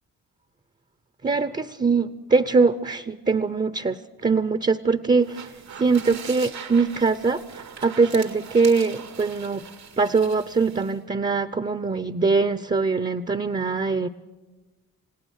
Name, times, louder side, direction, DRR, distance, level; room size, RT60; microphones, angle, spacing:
voice 1, 1.2-4.0 4.2-5.5 5.8-9.6 10.0-14.1, right 4 dB, 20° right, 13 dB, 0.7 m, -22 dB
sound 1, 5.2-11.0, right 7 dB, 85° right, 2.1 m, -41 dB
28.5 x 17.5 x 6.5 m, 1.2 s
cardioid pair, 65°, 36 cm